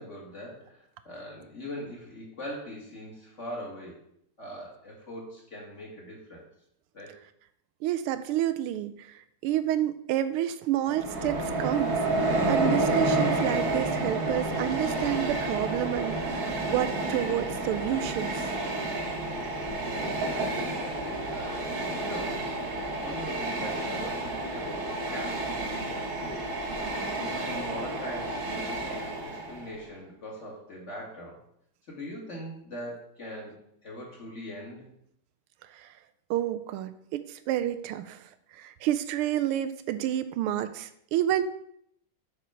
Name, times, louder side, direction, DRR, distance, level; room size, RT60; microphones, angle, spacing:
voice 1, 0.0-4.0 4.4-6.5 6.9-7.2 20.2-22.5 23.0-26.4 27.1-31.4 31.9-33.6 33.8-34.8, equal, 35° left, -3 dB, 2.2 m, -41 dB
voice 2, 7.8-18.5 35.7-35.9 36.3-41.4, right 12 dB, 85° right, 11 dB, 1.5 m, -29 dB
Train, 10.9-29.8, right 2 dB, 50° right, 1.5 m, -30 dB
7.3 x 4.4 x 5.7 m, 0.72 s
omnidirectional pair, 2.4 m